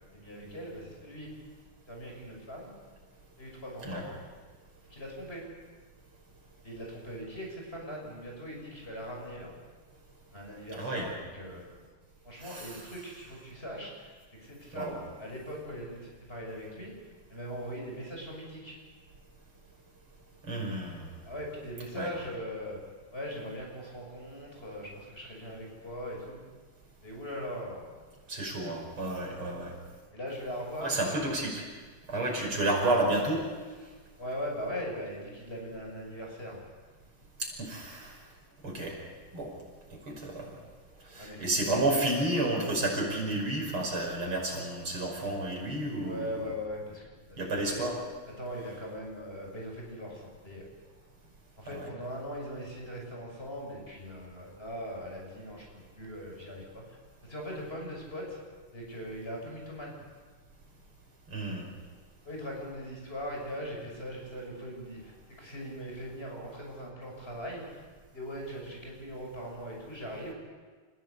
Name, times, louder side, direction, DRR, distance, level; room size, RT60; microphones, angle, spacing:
voice 1, 0.1-1.4 1.9-2.7 3.4-4.1 4.9-5.5 6.6-9.5 10.3-11.8 12.2-18.8 21.2-22.8 23.1-26.4 27.0-27.8 30.1-31.3 34.2-36.7 41.2-41.8 46.0-47.8 48.4-50.6 51.6-58.4 58.7-60.0 62.2-65.1 65.4-67.8 68.1-70.3, equal, 25° left, -1 dB, 6.7 m, -40 dB
voice 2, 10.8-11.1 12.4-12.8 14.7-15.0 20.5-21.1 21.9-22.1 28.3-29.7 30.8-31.6 32.1-33.4 37.6-38.1 38.6-38.9 39.3-39.5 40.1-40.5 41.1-46.3 47.4-48.0 61.3-61.7, right 2 dB, 75° right, 0 dB, 6.5 m, -31 dB
29.5 x 16.0 x 8.3 m, 1.5 s
omnidirectional pair, 2.4 m